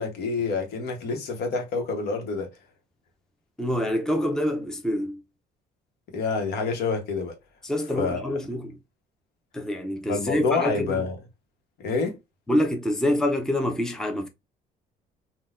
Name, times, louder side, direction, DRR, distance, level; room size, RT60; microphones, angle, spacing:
voice 1, 0.0-2.5 6.1-7.3 7.9-8.4 10.1-11.2 11.8-12.2, left 4 dB, 75° left, 1.1 m, -27 dB
voice 2, 3.6-5.2 7.6-8.8 9.5-11.0 12.5-14.3, left 1 dB, 5° left, 0.5 m, -26 dB
3.8 x 2.2 x 2.4 m
cardioid pair, 110°, 17 cm